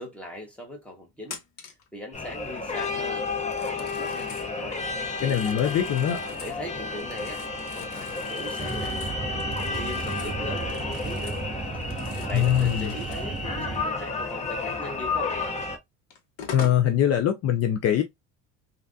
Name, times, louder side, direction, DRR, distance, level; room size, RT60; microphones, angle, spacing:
voice 1, 0.0-1.4 1.9-3.2 3.6-4.8 6.4-7.4 7.7-9.0 9.3-11.4 11.7-15.3, equal, 5° left, 1.4 m, -40 dB
Telephone, 1.2-1.9 3.4-4.5 5.0-6.6 7.0-11.5 11.8-13.3 15.4-15.5 16.1-16.9, left 6 dB, 65° left, 1.1 m, -43 dB
sound 1, 2.1-15.8, left 4 dB, 20° left, 0.8 m, -32 dB
voice 2, 5.2-6.2 12.3-12.9 16.5-18.0, left 10 dB, 45° left, 0.5 m, -22 dB
sound 2, 8.6-13.8, right 4 dB, 15° right, 0.4 m, -34 dB
3.2 x 2.6 x 2.6 m
supercardioid pair, 100°, 35 cm